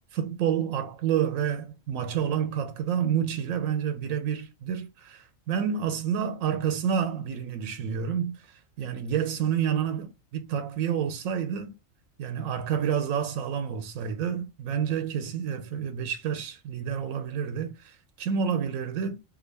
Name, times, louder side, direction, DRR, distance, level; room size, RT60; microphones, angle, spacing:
voice 1, 0.1-11.7 12.2-19.2, right 8 dB, 90° right, 1.0 m, -29 dB
3.5 x 2.5 x 3.1 m
omnidirectional pair, 1.4 m